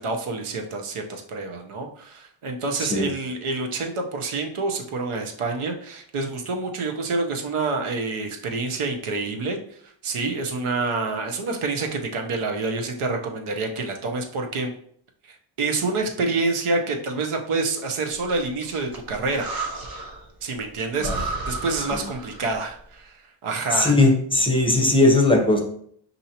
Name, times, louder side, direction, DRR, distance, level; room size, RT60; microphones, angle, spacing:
voice 1, 0.0-9.6 10.0-14.7 15.3-19.5 20.4-24.0, right 3 dB, 90° right, 3 dB, 0.8 m, -27 dB
Breathing, 18.1-20.3 20.6-20.7 21.0-22.7, right 3 dB, 45° right, 0.8 m, -33 dB
voice 2, 23.7-25.6, left 2 dB, 10° left, 0 dB, 0.8 m, -18 dB
6.4 x 2.7 x 2.8 m, 0.64 s
wide cardioid pair, 125°, 49 cm